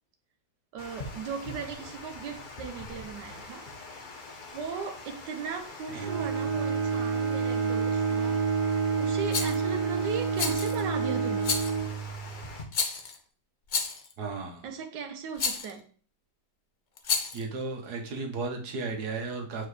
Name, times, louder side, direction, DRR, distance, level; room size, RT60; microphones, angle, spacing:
voice 1, 0.7-3.7 4.5-8.7 9.0-11.6 14.6-15.9, right 6 dB, 85° right, 5 dB, 1.5 m, -37 dB
Water, 0.8-12.6, left 3 dB, 35° left, 0.8 m, -44 dB
Bowed string instrument, 5.9-12.6, right 5 dB, 50° right, 0.6 m, -29 dB
Rattle, 9.3-9.6 10.4-10.8 11.4-11.8 12.7-13.2 13.7-14.1 15.4-15.7 17.0-17.4, left 5 dB, 80° left, 0.4 m, -30 dB
voice 2, 14.2-14.6 17.3-19.7, right 3 dB, 70° right, 3 dB, 1.6 m, -34 dB
7.0 x 4.4 x 3.2 m, 0.41 s
omnidirectional pair, 1.8 m